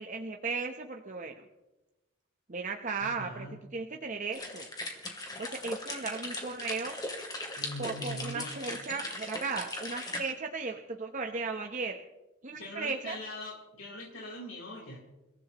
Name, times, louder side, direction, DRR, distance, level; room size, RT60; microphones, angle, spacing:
voice 1, 0.0-1.4 2.5-3.5 3.7-4.7 5.4-7.0 7.8-12.0 12.4-13.2, right 4 dB, 35° right, 3 dB, 0.9 m, -36 dB
voice 2, 3.0-3.5 7.6-8.5 12.5-15.0, equal, 70° left, -3 dB, 4.3 m, -42 dB
sound 1, 4.3-10.2, left 2 dB, 20° left, 2.4 m, -39 dB
29.0 x 15.0 x 3.0 m, 1.0 s
head